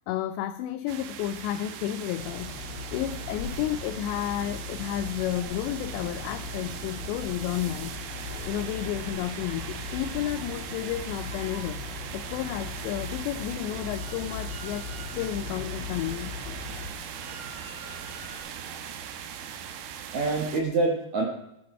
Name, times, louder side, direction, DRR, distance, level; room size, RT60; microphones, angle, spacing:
voice 1, 0.1-8.0 8.5-11.8 12.1-14.9 15.2-16.4, left 12 dB, 90° left, 13 dB, 2.5 m, -32 dB
sound 1, 0.9-20.6, right 8 dB, 80° right, 3.7 m, -40 dB
sound 2, 2.2-16.9, left 4 dB, 70° left, 3.7 m, -39 dB
Drill, 13.2-18.4, right 2 dB, 50° right, 3.4 m, -48 dB
voice 2, 20.1-21.3, right 3 dB, 65° right, 0 dB, 1.8 m, -27 dB
17.5 x 10.0 x 4.4 m, 0.83 s
omnidirectional pair, 5.6 m